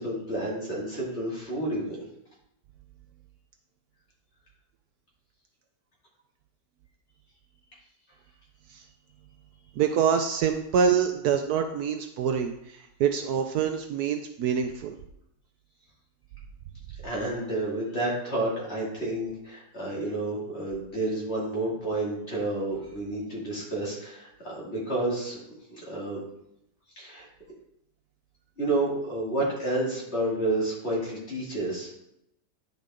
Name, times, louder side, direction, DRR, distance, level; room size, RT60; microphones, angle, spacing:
voice 1, 0.0-2.0 17.0-25.4 25.8-26.2 27.0-27.3 28.6-31.9, right 2 dB, 40° left, -5 dB, 3.0 m, -30 dB
voice 2, 9.8-15.0, right 7 dB, 70° right, 6 dB, 1.1 m, -26 dB
10.0 x 5.6 x 3.8 m, 0.80 s
omnidirectional pair, 1.8 m